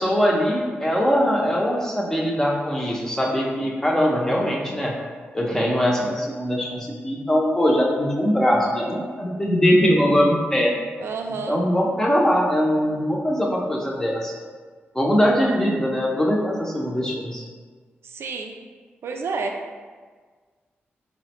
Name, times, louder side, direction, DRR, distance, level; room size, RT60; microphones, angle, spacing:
voice 1, 0.0-4.9 5.3-10.7 11.5-14.3 14.9-17.4, equal, 10° left, -2 dB, 0.6 m, -21 dB
voice 2, 11.0-11.6 18.0-18.5 19.0-19.6, right 4 dB, 80° right, 3 dB, 0.4 m, -29 dB
3.7 x 2.1 x 4.2 m, 1.5 s
cardioid pair, 85°, 4 cm